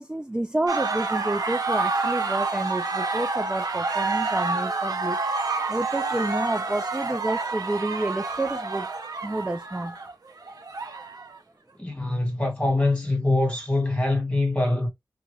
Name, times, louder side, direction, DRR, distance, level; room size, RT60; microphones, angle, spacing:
voice 1, 0.0-5.2 5.7-8.9 9.2-10.0, right 1 dB, 15° right, 0.3 m, -29 dB
sound 1, 0.7-11.4, right 3 dB, 65° right, 0.9 m, -28 dB
voice 2, 11.8-14.9, left 2 dB, 15° left, 1.9 m, -24 dB
2.8 x 2.5 x 3.2 m
wide cardioid pair, 85°, 7 cm